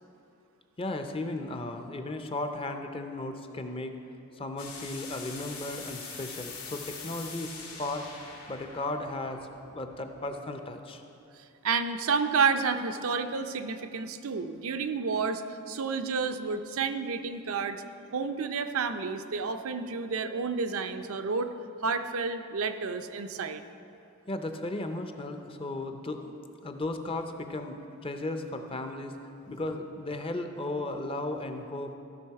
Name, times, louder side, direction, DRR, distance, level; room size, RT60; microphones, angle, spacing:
voice 1, 0.8-3.9 4.4-8.1 8.5-11.0 24.3-26.4 26.6-29.1 29.5-31.9, left 2 dB, 25° left, 6 dB, 0.5 m, -35 dB
sound 1, 4.6-10.3, left 5 dB, 80° left, 2.5 m, -43 dB
voice 2, 11.6-15.4 15.7-17.8 18.1-21.5 21.8-23.6, right 5 dB, 75° right, 8 dB, 0.5 m, -30 dB
14.5 x 6.2 x 4.7 m, 2.7 s
head